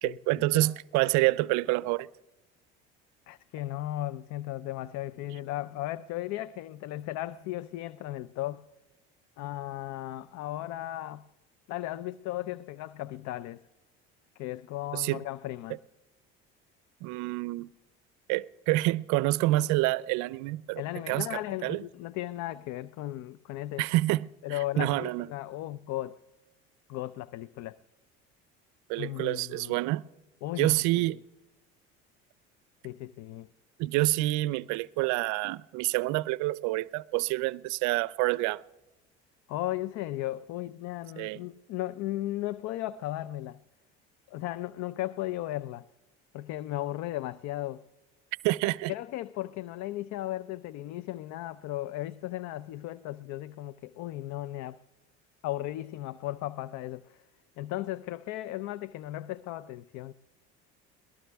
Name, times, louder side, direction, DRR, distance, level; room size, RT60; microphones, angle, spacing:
voice 1, 0.0-2.1 14.9-15.2 17.0-17.7 18.3-20.8 21.1-21.8 23.8-25.3 28.9-30.0 30.6-31.2 33.8-38.6 41.2-41.4 48.4-48.9, right 19 dB, 70° right, 0.5 m, -27 dB
voice 2, 3.3-8.6 9.4-11.2 11.7-13.6 14.4-15.8 20.8-23.8 24.4-26.2 26.9-27.8 29.0-29.7 30.4-31.2 32.8-33.5 39.5-43.6 44.3-45.9 46.3-47.8 48.9-54.8 55.4-57.2 57.6-60.1, left 15 dB, 65° left, 0.5 m, -36 dB
22.5 x 18.5 x 3.4 m
supercardioid pair, 80°, 31 cm